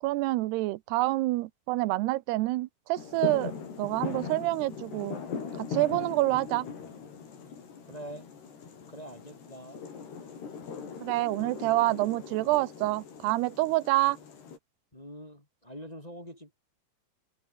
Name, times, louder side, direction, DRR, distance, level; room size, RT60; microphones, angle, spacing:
voice 1, 0.0-5.2 5.6-6.7 11.0-14.2, right 18 dB, 85° right, 2.9 m, -27 dB
sound 1, 3.0-14.6, left 6 dB, 85° left, 7.1 m, -40 dB
voice 2, 7.9-8.3 8.9-9.9 14.9-16.5, equal, 10° left, 2.7 m, -44 dB
omnidirectional pair, 4.6 m